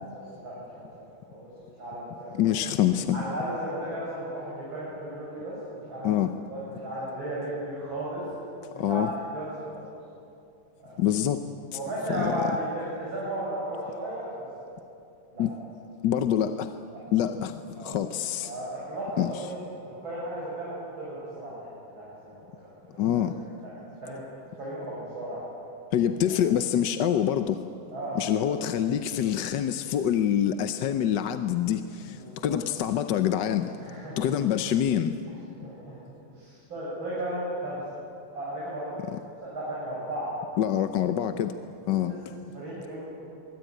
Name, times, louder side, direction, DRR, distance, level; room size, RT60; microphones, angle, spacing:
voice 1, 0.1-0.6 0.9-1.0 1.3-1.5 1.8-2.5 3.1-6.2 6.5-8.2 8.7-9.0 9.3-9.5 9.7-9.9 10.8-11.0 11.7-14.5 15.3-15.4 16.9-17.0 17.8-18.0 18.4-19.5 19.8-22.7 22.9-23.2 23.6-24.2 24.6-25.4 26.3-26.4 27.9-28.4 32.1-32.6 33.8-34.3 35.6-36.0 36.3-37.8 38.3-39.1 39.4-40.3 42.0-42.1 42.5-43.2, right 1 dB, 65° right, -8 dB, 7.5 m, -35 dB
voice 2, 2.4-3.2 6.0-6.3 8.8-9.1 11.0-11.4 11.7-11.8 12.1-12.3 15.4-15.5 16.0-16.7 17.1-18.5 19.2-19.3 23.0-23.3 25.9-27.6 28.1-33.8 34.2-35.2 39.1-39.2 40.6-41.5 41.9-42.1, left 10 dB, 65° left, 9 dB, 1.3 m, -26 dB
24.5 x 22.0 x 9.1 m, 2.6 s
omnidirectional pair, 2.4 m